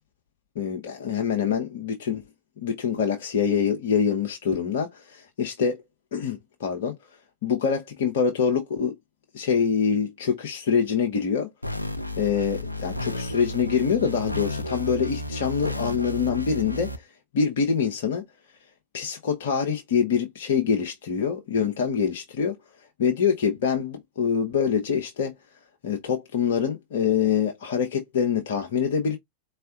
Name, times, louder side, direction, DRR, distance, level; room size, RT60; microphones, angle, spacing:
voice 1, 0.6-2.2 2.6-5.8 6.1-6.9 7.4-8.9 9.3-11.5 12.2-18.2 18.9-22.6 23.0-25.3 25.8-29.2, left 7 dB, 55° left, 0.7 m, -25 dB
sound 1, 11.6-17.0, left 1 dB, 85° left, 0.4 m, -32 dB
4.4 x 3.3 x 2.3 m
figure-of-eight pair, 90°, 0 cm